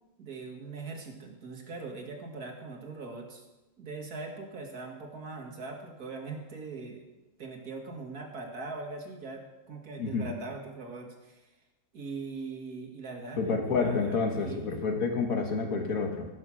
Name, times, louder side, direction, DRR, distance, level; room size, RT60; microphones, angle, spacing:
voice 1, 0.2-3.4 3.8-7.0 7.4-11.4 11.9-14.7, right 3 dB, 80° right, 2 dB, 2.2 m, -41 dB
voice 2, 13.4-16.3, left 4 dB, 65° left, 3 dB, 2.0 m, -29 dB
15.0 x 6.4 x 6.1 m, 1.1 s
omnidirectional pair, 1.6 m